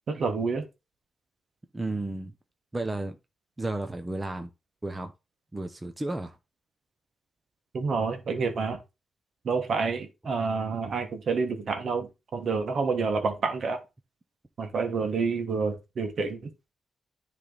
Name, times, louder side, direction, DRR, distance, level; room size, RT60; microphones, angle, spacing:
voice 1, 0.1-0.6 7.7-8.8 9.4-13.8 14.6-16.5, right 4 dB, 55° right, 1.5 m, -28 dB
voice 2, 1.7-2.3 2.7-3.2 3.6-4.5 4.8-5.1 5.5-6.4, right 2 dB, 15° right, 0.7 m, -32 dB
10.0 x 3.3 x 4.0 m
cardioid pair, 100°, 0 cm